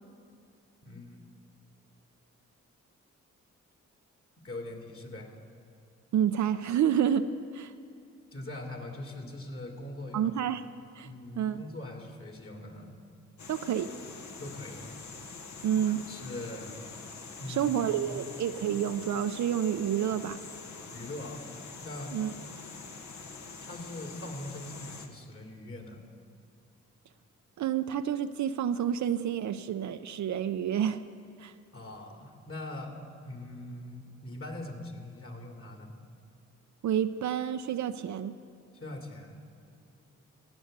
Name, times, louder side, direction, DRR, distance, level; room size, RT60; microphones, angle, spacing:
voice 1, 0.8-1.2 4.4-5.3 8.3-10.3 11.0-12.9 14.4-15.0 15.8-16.8 17.4-18.2 20.9-21.4 21.8-22.2 23.6-26.0 31.7-33.0 33.2-36.0 38.7-39.4, left 1 dB, 45° left, 1 dB, 2.6 m, -42 dB
voice 2, 6.1-7.3 7.5-7.7 10.1-10.6 11.0-11.1 11.4-11.6 13.5-13.9 15.6-16.0 17.5-20.4 22.1-22.3 27.6-31.0 31.4-31.5 36.8-38.4, right 9 dB, 65° right, 10 dB, 0.5 m, -29 dB
sound 1, 13.4-25.1, left 4 dB, 65° left, 1.2 m, -45 dB
16.5 x 7.8 x 6.6 m, 2.5 s
supercardioid pair, 55°, 31 cm